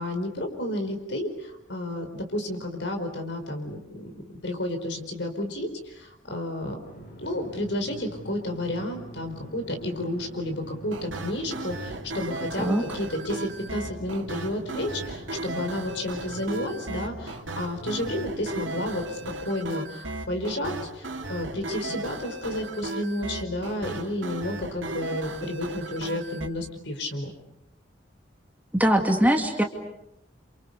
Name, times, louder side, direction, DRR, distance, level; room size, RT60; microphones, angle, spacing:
voice 1, 0.0-4.1 4.4-6.8 7.2-19.2 19.5-27.3, left 1 dB, 70° left, 5 dB, 5.0 m, -31 dB
sound 1, 6.8-19.5, right 1 dB, 55° left, 6.9 m, -45 dB
sound 2, 10.9-26.5, right 2 dB, 85° right, 2.7 m, -36 dB
voice 2, 28.7-29.6, equal, 10° right, 3 dB, 2.3 m, -21 dB
30.0 x 27.5 x 6.9 m, 0.83 s
head